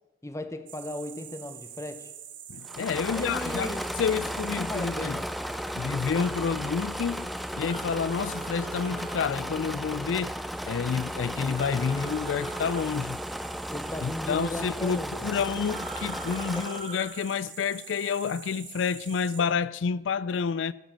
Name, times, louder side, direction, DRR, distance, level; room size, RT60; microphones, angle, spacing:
voice 1, 0.2-2.1 3.0-3.9 4.5-5.3 13.7-15.3, left 1 dB, 15° left, 0.9 m, -36 dB
sound 1, 0.7-19.4, right 10 dB, 80° right, 1.8 m, -47 dB
voice 2, 2.5-5.2 5.8-10.4 10.6-13.2 14.0-20.7, left 6 dB, 80° left, 0.4 m, -29 dB
Engine / Mechanisms, 2.6-16.9, equal, ahead, 0.4 m, -35 dB
sound 2, 6.1-6.3 7.6-9.3 11.5-12.9 15.6-17.2, right 4 dB, 35° right, 0.9 m, -42 dB
16.0 x 7.5 x 7.4 m
head